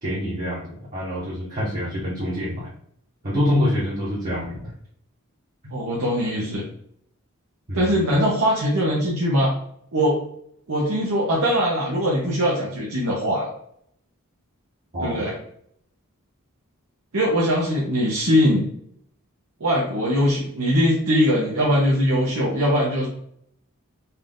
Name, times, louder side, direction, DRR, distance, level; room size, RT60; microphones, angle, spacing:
voice 1, 0.0-2.7 3.2-4.7 7.7-8.1 14.9-15.2, left 1 dB, 40° right, -8 dB, 1.2 m, -26 dB
voice 2, 5.7-6.6 7.7-9.5 9.9-10.2 10.7-13.5 15.0-15.3 17.1-18.7 19.6-23.1, equal, 80° right, -5 dB, 1.0 m, -21 dB
4.2 x 2.6 x 3.6 m, 0.68 s
head